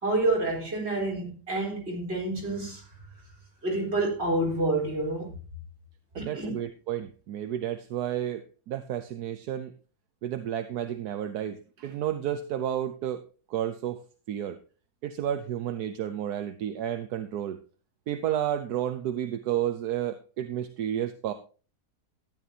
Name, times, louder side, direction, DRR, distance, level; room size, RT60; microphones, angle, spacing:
voice 1, 0.0-2.8 3.6-5.3 6.2-6.5, right 2 dB, 40° right, 4.4 m, -28 dB
voice 2, 6.1-9.7 10.2-13.2 13.5-14.0 14.3-14.6 15.0-17.6 18.1-21.3, right 10 dB, 75° right, 1.3 m, -31 dB
13.5 x 10.5 x 2.8 m
omnidirectional pair, 1.7 m